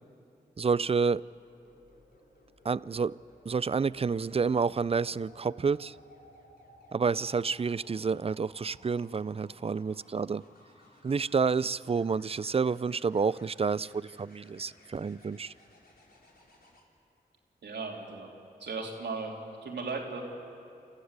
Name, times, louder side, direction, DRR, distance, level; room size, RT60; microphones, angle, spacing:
voice 1, 0.6-1.2 2.6-3.1 3.5-6.0 6.9-10.4 11.0-15.5, right 5 dB, 35° right, 20 dB, 0.4 m, -29 dB
sound 1, 0.7-16.8 18.7-19.0, left 1 dB, 60° left, 4.0 m, -59 dB
voice 2, 17.6-18.3 18.6-19.3 19.6-20.2, right 4 dB, 80° right, 0 dB, 3.1 m, -36 dB
27.5 x 14.5 x 8.2 m, 2.5 s
cardioid pair, 45°, 17 cm